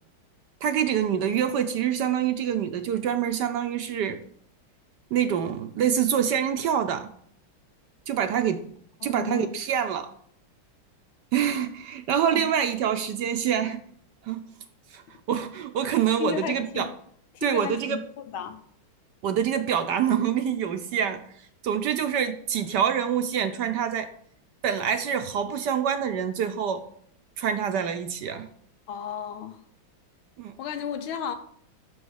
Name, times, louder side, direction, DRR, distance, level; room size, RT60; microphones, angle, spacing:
voice 1, 0.6-4.2 5.1-7.1 8.1-8.6 9.0-10.1 11.3-13.8 14.2-14.4 14.9-15.0 15.3-16.9 17.4-18.0 19.2-21.2 21.6-24.1 24.6-26.8 27.4-28.5 30.4-30.5, right 8 dB, 70° right, 8 dB, 1.1 m, -26 dB
voice 2, 9.0-9.5 12.3-12.5 16.2-16.9 17.3-18.0 18.3-18.6 28.9-29.6 30.6-31.3, left 9 dB, 80° left, 7 dB, 1.7 m, -33 dB
6.4 x 6.2 x 6.3 m, 0.64 s
omnidirectional pair, 2.3 m